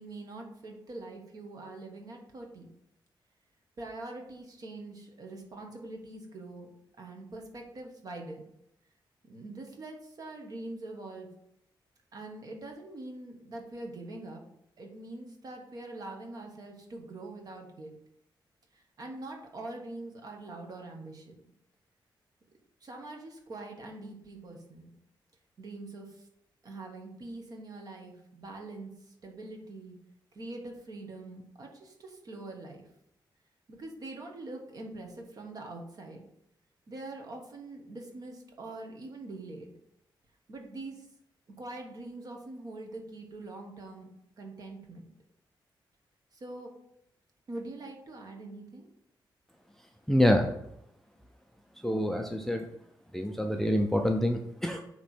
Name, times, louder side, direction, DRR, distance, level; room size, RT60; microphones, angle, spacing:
voice 1, 0.0-2.7 3.8-6.7 7.0-8.5 9.2-11.3 12.1-14.4 14.8-18.0 18.7-21.3 22.8-24.9 25.6-26.3 26.6-30.0 30.3-32.9 33.7-36.2 36.9-39.7 40.5-41.1 41.5-44.1 44.4-45.1 46.3-46.7 47.5-48.9, right 2 dB, 45° right, 2 dB, 1.3 m, -43 dB
voice 2, 50.1-50.5 51.8-52.7 53.1-54.8, equal, 5° left, 3 dB, 0.5 m, -26 dB
8.6 x 3.1 x 4.4 m, 0.78 s
wide cardioid pair, 160°, 8 cm